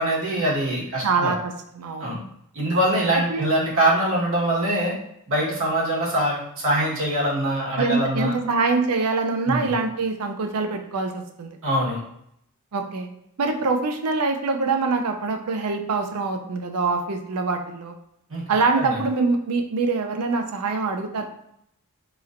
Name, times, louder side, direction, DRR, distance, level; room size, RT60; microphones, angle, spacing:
voice 1, 0.0-1.3 2.0-2.2 2.5-4.9 5.3-8.4 9.5-9.7 11.6-12.0 18.3-18.4 18.7-19.0, right 1 dB, 60° right, -5 dB, 1.3 m, -23 dB
voice 2, 1.0-2.1 3.1-3.5 7.8-11.6 12.7-13.1 13.4-17.9 18.5-21.2, right 4 dB, 90° right, 5 dB, 0.5 m, -24 dB
4.1 x 3.0 x 2.5 m, 0.75 s
head